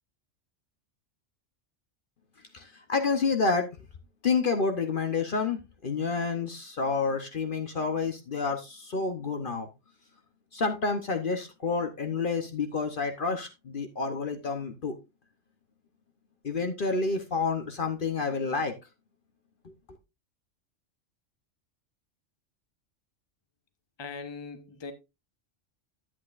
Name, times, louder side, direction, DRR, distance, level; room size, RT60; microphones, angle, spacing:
voice 1, 2.5-3.7 4.2-9.7 10.5-14.9 16.4-18.7 19.6-19.7, left 4 dB, 45° left, 1.0 m, -29 dB
voice 2, 24.0-24.9, left 4 dB, 25° left, 0.9 m, -40 dB
10.5 x 8.6 x 2.5 m
omnidirectional pair, 1.3 m